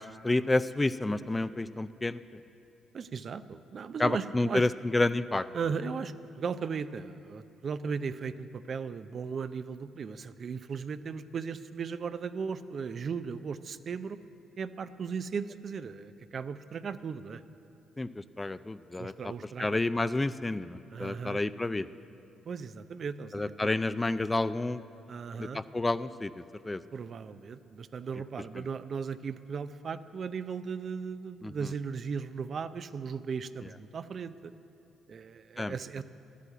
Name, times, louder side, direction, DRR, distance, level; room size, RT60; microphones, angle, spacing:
voice 1, 0.0-2.2 4.0-5.5 18.0-19.1 19.6-21.9 23.3-24.8 25.4-26.3 26.6-26.8 31.4-31.5 35.6-35.7, left 2 dB, 15° left, 14 dB, 0.3 m, -29 dB
voice 2, 2.9-4.7 5.5-14.2 14.6-17.4 19.0-19.8 20.9-21.4 22.5-23.7 25.1-25.6 26.9-34.5 35.1-36.0, right 6 dB, 50° right, 12 dB, 0.5 m, -37 dB
12.0 x 8.4 x 9.9 m, 2.9 s
cardioid pair, 90°, 0 cm